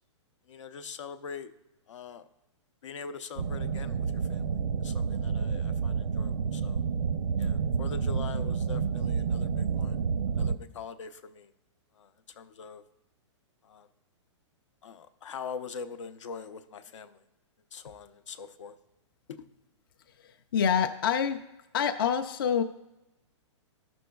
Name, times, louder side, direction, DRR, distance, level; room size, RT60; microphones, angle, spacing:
voice 1, 0.5-1.5 1.9-2.3 2.8-6.8 7.4-10.0 10.3-11.5 11.9-12.8 13.6-13.9 14.8-17.2 17.7-18.7 19.3-19.5, left 6 dB, 80° left, 10 dB, 0.7 m, -43 dB
sound 1, 3.4-10.6, right 6 dB, 90° right, 0.6 m, -29 dB
voice 2, 20.2-21.4 21.7-22.6, left 7 dB, 45° left, 6 dB, 0.4 m, -27 dB
14.5 x 6.1 x 2.3 m, 0.96 s
hypercardioid pair, 175°, 16 cm